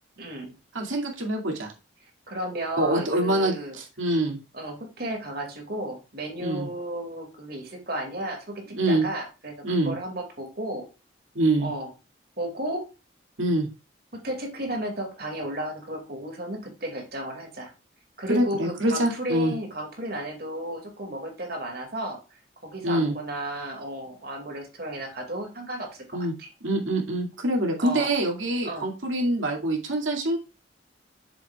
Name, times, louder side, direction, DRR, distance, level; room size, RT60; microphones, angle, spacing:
voice 1, 0.2-0.5 2.3-3.8 4.5-9.5 9.9-10.8 11.6-11.9 12.4-12.9 14.1-17.7 18.2-22.2 22.6-26.5 27.8-28.1 28.6-28.9, right 1 dB, 50° right, 3 dB, 2.3 m, -33 dB
voice 2, 0.7-1.7 2.8-4.4 6.4-6.7 8.7-9.0 9.6-9.9 11.3-11.7 13.4-13.7 18.3-19.5 22.8-23.1 26.1-26.3 26.6-30.4, right 1 dB, 85° right, 1 dB, 2.4 m, -25 dB
7.5 x 7.1 x 2.4 m, 0.30 s
head